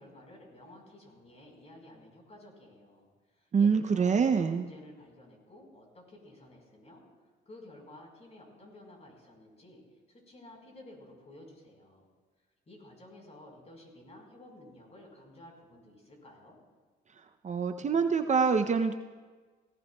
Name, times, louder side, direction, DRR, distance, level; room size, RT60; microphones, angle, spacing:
voice 1, 0.0-7.0 7.4-9.8 10.1-12.1 12.7-16.6, left 1 dB, 35° left, 0 dB, 4.7 m, -53 dB
voice 2, 3.5-4.7 17.4-18.9, right 5 dB, 35° right, 7 dB, 0.6 m, -25 dB
17.5 x 17.5 x 2.3 m, 1.4 s
cardioid pair, 90°, 20 cm